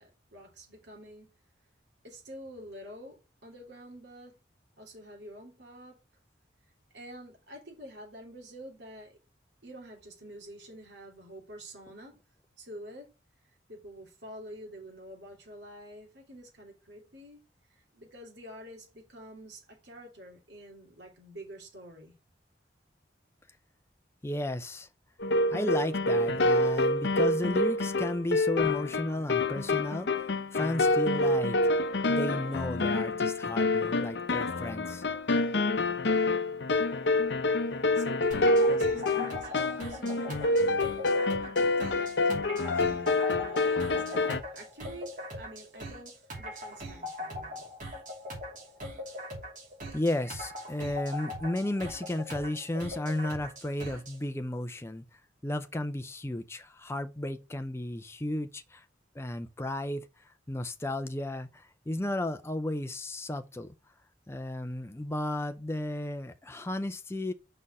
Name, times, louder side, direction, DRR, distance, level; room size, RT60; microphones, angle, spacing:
voice 1, 0.0-1.3 2.0-4.4 4.8-6.0 6.9-9.2 9.6-12.2 12.6-13.1 13.7-17.4 17.7-22.1 37.7-47.7, right 1 dB, 70° right, 3.0 m, -48 dB
voice 2, 24.2-24.9 25.5-31.6 32.1-35.0 49.9-55.0 55.4-58.8 59.1-63.7 64.3-67.3, left 1 dB, 15° left, 0.5 m, -34 dB
sound 1, 25.2-44.4, left 2 dB, 70° left, 0.7 m, -27 dB
sound 2, 38.3-54.2, left 1 dB, 45° right, 2.8 m, -41 dB
5.5 x 4.3 x 6.2 m
head